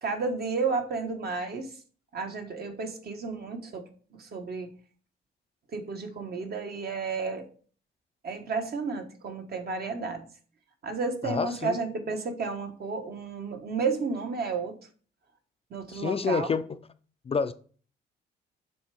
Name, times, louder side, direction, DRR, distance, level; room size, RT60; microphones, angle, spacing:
voice 1, 0.0-1.7 2.1-3.8 4.2-4.7 5.7-7.4 8.2-10.2 10.8-14.7 15.7-16.5, right 4 dB, 50° right, 1.3 m, -32 dB
voice 2, 11.2-11.8 15.9-16.6 17.3-17.5, left 5 dB, 30° left, 0.4 m, -28 dB
6.9 x 3.4 x 4.7 m
cardioid pair, 90°, 20 cm